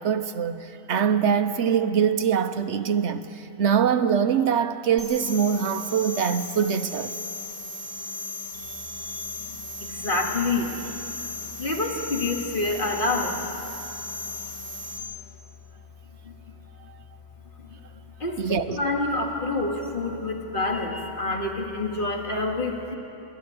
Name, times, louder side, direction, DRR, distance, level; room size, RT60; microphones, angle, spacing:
voice 1, 0.0-7.1 18.4-18.8, right 7 dB, 65° right, 1.0 m, -23 dB
sound 1, 5.0-15.0, left 2 dB, 15° right, 3.8 m, -36 dB
voice 2, 8.5-10.9 11.2-13.4 16.2-16.3 17.6-17.8 18.2-22.9, left 2 dB, 40° left, 2.3 m, -28 dB
27.5 x 12.5 x 9.6 m
omnidirectional pair, 1.4 m